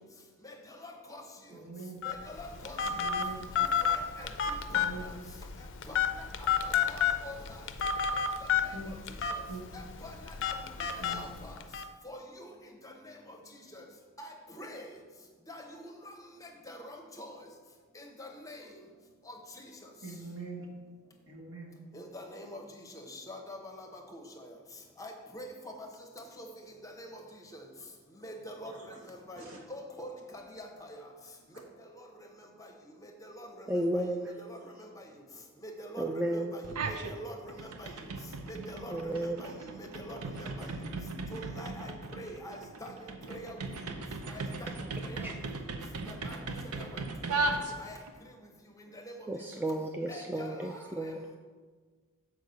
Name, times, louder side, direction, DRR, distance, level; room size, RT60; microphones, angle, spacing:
voice 1, 0.8-1.2 2.1-3.0 3.6-4.9 5.9-6.0 6.4-7.4 8.4-8.5 8.9-9.0 9.3-9.4 9.7-11.5 12.0-12.5 12.8-13.4 13.7-13.8 14.2-14.9 15.5-16.1 16.4-17.3 18.0-18.6 19.3-19.4 21.9-22.6 22.9-24.5 25.0-25.9 26.2-26.5 26.8-27.2 27.5-27.7 28.2-29.4 29.7-31.0 33.0-33.7 33.9-34.0 34.4-34.6 35.0-35.1 35.6-36.0 36.3-37.9 38.5-39.1 39.4-39.5 39.8-40.7 41.3-42.9 43.3-43.6 44.3-44.7 45.0-45.3 46.1-46.4 46.8-47.0 47.3-47.5 47.8-48.0 48.9-49.1 50.1-50.8, left 1 dB, 15° left, 3 dB, 0.8 m, -45 dB
voice 2, 1.5-2.0 2.8-3.4 4.7-5.1 8.7-8.9 9.5-9.6 11.0-11.2 20.0-20.7 21.2-21.7 28.7-28.8 29.4-29.6, right 3 dB, 65° right, -1 dB, 1.6 m, -43 dB
Telephone, 2.0-11.8, left 7 dB, 55° left, 0.5 m, -31 dB
voice 3, 33.7-34.3 36.0-36.6 38.9-39.5 44.8-44.9 45.2-45.3 49.3-51.3, right 1 dB, 10° right, 2 dB, 0.3 m, -33 dB
sound 1, 36.6-37.2 37.5-48.1, right 3 dB, 85° right, 0.8 m, -37 dB
6.5 x 4.7 x 6.7 m, 1.5 s
head